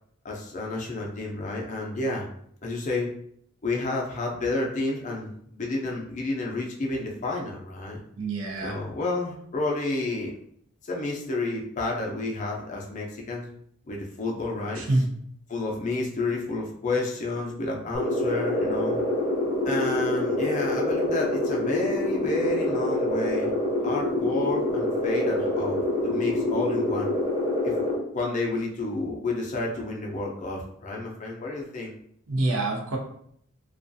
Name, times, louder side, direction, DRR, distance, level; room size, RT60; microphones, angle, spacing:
voice 1, 0.2-2.3 2.6-3.1 3.6-8.0 8.6-10.4 10.8-13.5 13.9-15.0 15.5-19.0 19.6-23.5 23.8-27.1 27.6-27.8 28.1-31.9, left 2 dB, 35° left, -1 dB, 0.5 m, -30 dB
voice 2, 8.2-8.7 14.9-15.1 32.3-33.0, right 2 dB, 75° right, 0 dB, 0.6 m, -25 dB
sound 1, 17.9-28.0, left 1 dB, 30° right, 1.1 m, -26 dB
2.3 x 2.2 x 2.6 m, 0.66 s
head